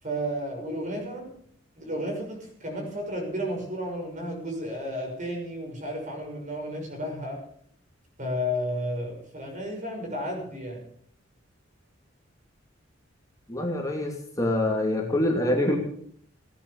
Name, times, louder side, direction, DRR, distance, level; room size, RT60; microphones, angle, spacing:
voice 1, 0.0-1.3 1.8-7.4 8.2-10.8, equal, 40° right, 1 dB, 6.3 m, -32 dB
voice 2, 13.5-15.8, left 1 dB, 15° left, 1 dB, 2.7 m, -25 dB
17.0 x 10.5 x 7.2 m, 0.63 s
head